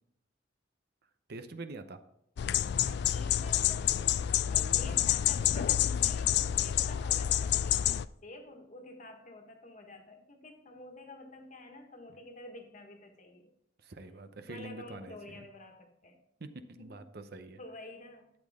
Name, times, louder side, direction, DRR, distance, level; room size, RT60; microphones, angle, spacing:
voice 1, 1.3-2.0 13.8-15.5 16.4-17.6, right 2 dB, 55° right, 9 dB, 0.8 m, -45 dB
sound 1, 2.4-8.1, left 11 dB, 60° left, 0.3 m, -28 dB
voice 2, 2.8-4.2 4.4-13.5 14.5-16.2 16.8-17.0 17.6-18.3, left 2 dB, 40° left, 4 dB, 1.5 m, -49 dB
12.0 x 8.4 x 3.6 m, 0.77 s
head